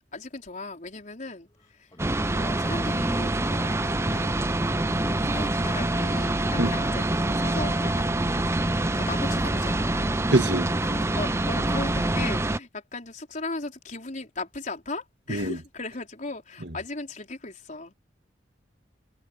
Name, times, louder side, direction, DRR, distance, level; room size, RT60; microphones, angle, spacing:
voice 1, 0.1-1.9 2.3-10.2 10.8-17.9, left 3 dB, 45° left, 4.8 m, -38 dB
sound 1, 1.6-3.1 3.5-6.1 6.5-8.9, left 1 dB, 25° left, 4.2 m, -48 dB
sound 2, 2.0-12.6, right 1 dB, 15° right, 0.7 m, -25 dB
voice 2, 10.3-10.7 15.3-15.6, right 1 dB, 65° right, 2.2 m, -23 dB
head